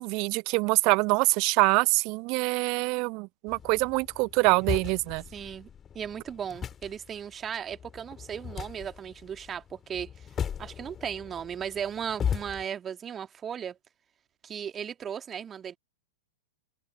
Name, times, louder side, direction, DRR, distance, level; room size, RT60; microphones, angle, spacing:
voice 1, 0.0-5.2, right 29 dB, 40° right, 0.7 m, -25 dB
sound 1, 3.5-12.6, left 8 dB, 20° left, 3.5 m, -38 dB
voice 2, 5.3-5.7 5.9-10.3 10.6-13.8 14.4-15.8, right 8 dB, 20° right, 2.7 m, -36 dB
figure-of-eight pair, 100°, 0 cm